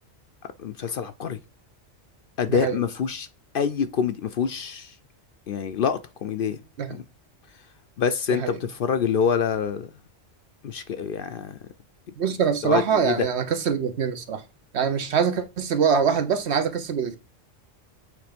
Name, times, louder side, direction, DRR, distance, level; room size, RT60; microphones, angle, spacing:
voice 1, 0.6-1.4 2.4-3.3 3.5-4.9 5.5-6.6 6.9-7.0 8.0-9.9 10.6-11.6 12.6-13.3, left 7 dB, 60° left, 0.7 m, -26 dB
voice 2, 2.5-2.8 6.8-7.0 8.3-8.5 12.2-14.4 14.7-17.2, right 7 dB, 65° right, 1.1 m, -24 dB
8.0 x 3.4 x 5.1 m
omnidirectional pair, 1.2 m